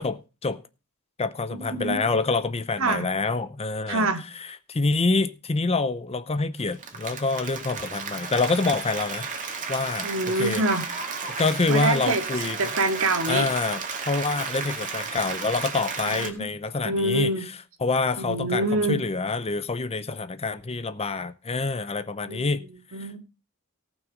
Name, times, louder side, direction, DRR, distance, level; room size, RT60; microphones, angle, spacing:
voice 1, 0.0-0.6 1.2-4.1 4.7-9.3 9.7-10.6 11.4-12.6 13.3-22.6 23.0-23.2, left 3 dB, 30° left, 0.7 m, -26 dB
voice 2, 1.6-2.0 2.8-3.1 3.9-4.2 10.0-10.8 11.7-12.2 12.6-13.5 16.1-16.5 16.8-17.5 18.2-19.0 22.3-23.2, right 2 dB, 65° right, 2.0 m, -26 dB
Applause, 6.6-16.3, right 5 dB, 35° right, 2.1 m, -33 dB
18.0 x 6.1 x 5.2 m
head